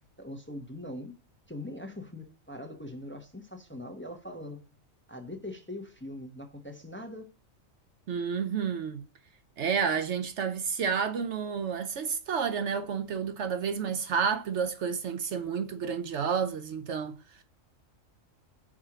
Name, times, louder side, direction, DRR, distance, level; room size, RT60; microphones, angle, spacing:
voice 1, 0.2-1.1 1.5-4.6 5.1-7.3, left 1 dB, 10° left, 0.8 m, -41 dB
voice 2, 8.1-9.0 9.6-17.4, right 6 dB, 65° right, 0.9 m, -30 dB
4.9 x 4.4 x 5.8 m
omnidirectional pair, 1.4 m